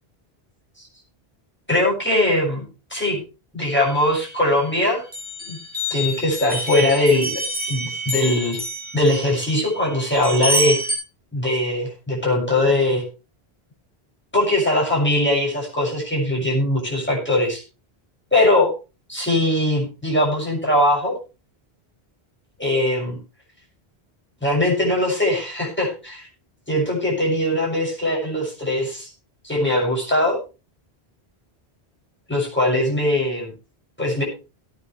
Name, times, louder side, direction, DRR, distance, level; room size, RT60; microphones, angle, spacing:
voice 1, 1.7-2.6 2.9-3.2 3.5-5.0 5.5-5.6 5.9-7.4 7.7-8.6 8.9-10.8 11.3-13.0 14.3-17.6 18.3-18.7 19.1-21.1 22.6-23.2 24.4-26.3 26.7-29.1 29.4-30.4 32.3-33.5 34.0-34.2, left 1 dB, 10° left, -4 dB, 6.5 m, -21 dB
sound 1, 3.7-4.7 5.1-11.0, right 1 dB, 10° right, 7.2 m, -28 dB
18.0 x 9.7 x 3.3 m, 0.31 s
omnidirectional pair, 1.1 m